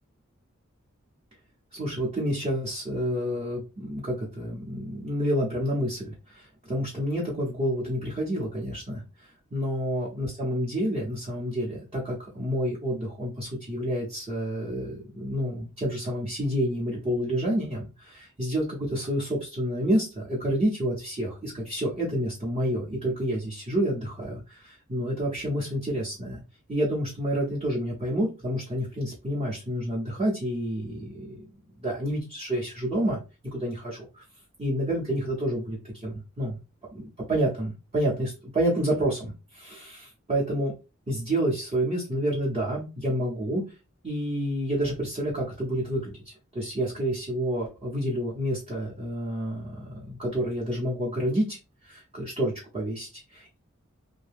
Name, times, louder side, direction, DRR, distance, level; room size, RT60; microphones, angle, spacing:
voice 1, 1.7-9.0 9.5-26.4 26.7-31.3 31.8-33.2 33.5-34.2 34.6-36.6 36.9-40.7 41.1-43.6 44.0-46.1 46.5-51.6 51.8-53.6, equal, 30° right, -5 dB, 0.8 m, -29 dB
2.7 x 2.1 x 3.4 m, 0.29 s
head